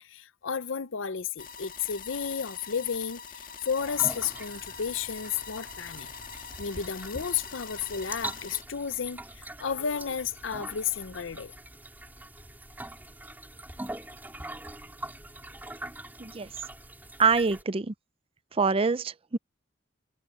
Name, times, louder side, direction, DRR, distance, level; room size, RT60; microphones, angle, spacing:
voice 1, 0.0-6.1 6.6-11.5, left 7 dB, 80° left, 0.7 m, -32 dB
sound 1, 1.4-8.6, left 6 dB, 45° left, 1.6 m, -44 dB
sound 2, 3.8-17.6, right 1 dB, 10° right, 3.3 m, -43 dB
voice 2, 17.2-17.9 18.6-19.4, right 5 dB, 30° right, 0.5 m, -25 dB
head